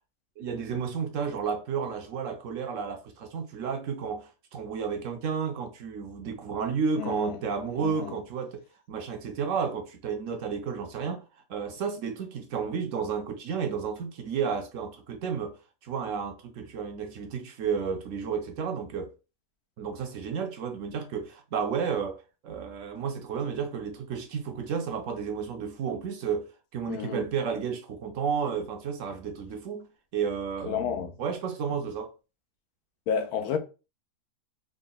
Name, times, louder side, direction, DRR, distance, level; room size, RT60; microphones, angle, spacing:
voice 1, 0.4-8.6 8.9-11.2 11.5-15.6 15.8-19.1 19.8-26.5 26.7-29.9 30.1-32.1, right 6 dB, 70° right, 0.8 m, -32 dB
voice 2, 7.0-7.4 7.8-8.1 26.9-27.3 30.7-31.1 33.1-33.6, left 7 dB, 80° left, 1.1 m, -31 dB
3.7 x 2.1 x 3.8 m
omnidirectional pair, 1.6 m